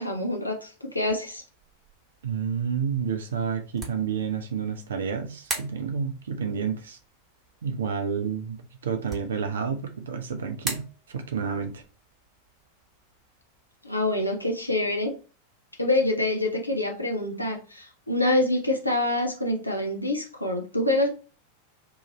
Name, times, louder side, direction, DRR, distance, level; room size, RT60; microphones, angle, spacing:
voice 1, 0.0-1.4 13.8-15.1 15.8-21.1, left 1 dB, 85° left, 0.5 m, -26 dB
sound 1, 1.1-15.2, right 3 dB, 20° right, 1.1 m, -43 dB
voice 2, 2.2-7.0 7.6-8.6 8.8-11.8, right 6 dB, 65° right, 0.4 m, -30 dB
2.8 x 2.5 x 4.0 m
figure-of-eight pair, 90°, 0 cm